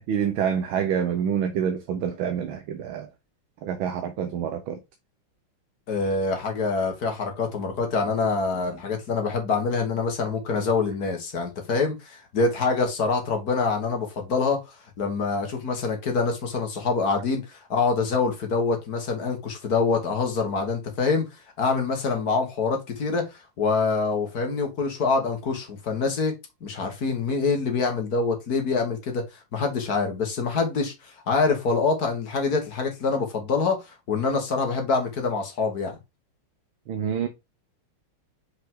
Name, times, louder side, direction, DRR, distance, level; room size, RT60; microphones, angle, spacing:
voice 1, 0.1-3.1 3.6-4.8 36.9-37.3, right 8 dB, 75° right, 1.6 m, -27 dB
voice 2, 5.9-14.6 15.0-21.3 21.6-29.3 29.5-33.8 34.1-36.0, left 4 dB, 50° left, 1.9 m, -25 dB
6.1 x 5.4 x 3.7 m
omnidirectional pair, 2.3 m